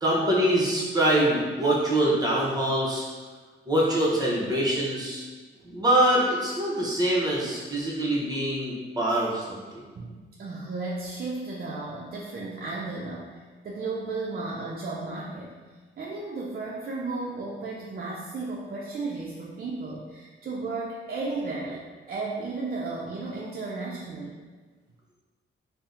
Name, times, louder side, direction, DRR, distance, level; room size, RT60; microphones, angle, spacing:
voice 1, 0.0-3.0 3.7-5.2 5.6-9.6, right 1 dB, 20° right, -5 dB, 0.9 m, -24 dB
voice 2, 9.9-15.6 16.0-24.4, right 3 dB, 45° right, -3 dB, 0.4 m, -34 dB
2.7 x 2.1 x 3.6 m, 1.4 s
cardioid pair, 85°, 21 cm